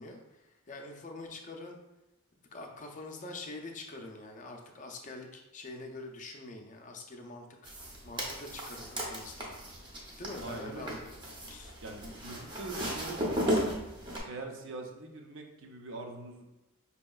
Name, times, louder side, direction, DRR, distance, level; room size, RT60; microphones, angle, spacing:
voice 1, 0.0-1.8 2.5-7.5 8.0-9.5 10.2-11.2 11.5-11.7, left 2 dB, 35° left, 3 dB, 0.5 m, -44 dB
sound 1, 7.6-14.2, equal, 20° right, 0.7 m, -35 dB
voice 2, 10.4-11.0 11.8-13.5 14.2-16.4, right 2 dB, 60° right, 3 dB, 0.6 m, -43 dB
5.2 x 2.8 x 2.3 m, 0.99 s
head